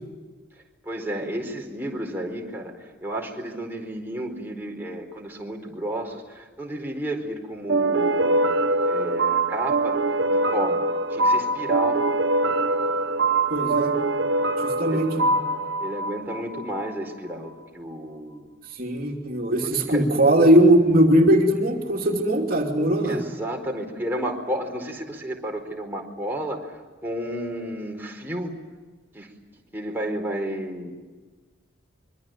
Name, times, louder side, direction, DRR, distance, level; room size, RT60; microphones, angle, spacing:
voice 1, 0.8-8.4 8.9-10.0 10.3-10.8 11.1-12.0 14.9-15.0 15.8-18.5 19.9-20.0 23.0-26.8 27.0-28.5 29.1-29.3 29.7-30.9, right 1 dB, 10° right, 0 dB, 4.5 m, -32 dB
sound 1, 7.7-16.9, right 2 dB, 65° right, 1.2 m, -23 dB
voice 2, 13.5-13.9 14.6-15.3 18.7-23.2, right 1 dB, 45° right, 1 dB, 2.9 m, -20 dB
26.0 x 24.0 x 9.3 m, 1.3 s
head